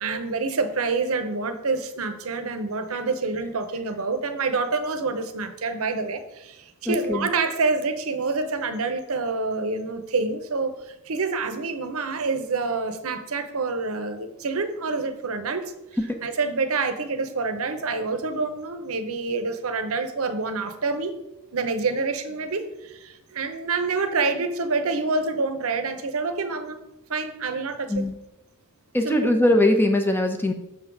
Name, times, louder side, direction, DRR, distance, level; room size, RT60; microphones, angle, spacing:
voice 1, 0.0-15.7 16.2-21.1 21.5-26.8 27.1-27.9 29.0-29.3, right 4 dB, 65° right, 9 dB, 0.7 m, -27 dB
voice 2, 6.9-7.3 16.1-16.2 27.9-28.2 28.9-30.5, left 1 dB, 10° left, 5 dB, 0.7 m, -21 dB
6.5 x 3.8 x 5.9 m, 0.90 s
head